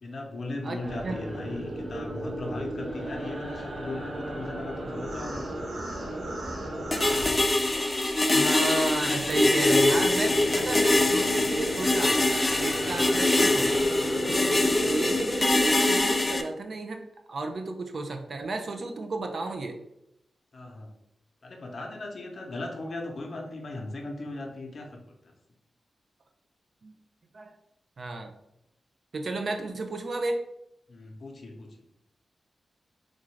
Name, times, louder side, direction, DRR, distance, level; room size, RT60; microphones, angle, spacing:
voice 1, 0.0-5.4 14.7-15.1 20.5-20.9 21.4-25.3 30.9-31.7, left 2 dB, 55° left, 2 dB, 0.7 m, -38 dB
voice 2, 0.6-1.1 8.3-12.2 12.6-13.8 14.8-19.8 26.8-26.9 27.3-27.5 28.0-28.3 29.1-30.4, right 2 dB, 55° right, 5 dB, 0.4 m, -33 dB
sound 1, 0.8-8.1 8.4-16.4, right 1 dB, 75° right, 1.0 m, -35 dB
sound 2, 6.9-16.4, left 2 dB, 25° left, 0.3 m, -24 dB
sound 3, 6.9-13.8, equal, 5° right, 1.1 m, -43 dB
3.7 x 2.5 x 3.1 m, 0.82 s
wide cardioid pair, 90°, 0 cm